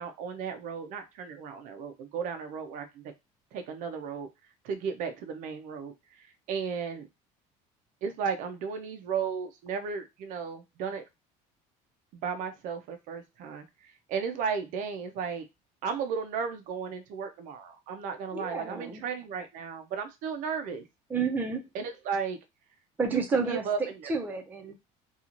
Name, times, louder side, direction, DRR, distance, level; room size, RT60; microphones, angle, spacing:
voice 1, 0.0-3.0 3.5-4.3 4.6-7.1 8.0-11.0 12.2-15.4 15.8-20.9 21.7-22.4 23.1-23.9, right 6 dB, 55° right, 7 dB, 0.5 m, -34 dB
voice 2, 18.3-19.0 21.1-21.6 23.0-23.6 24.1-24.7, right 4 dB, 10° right, 3 dB, 0.5 m, -30 dB
2.9 x 2.3 x 2.4 m, 0.22 s
cardioid pair, 150°, 16 cm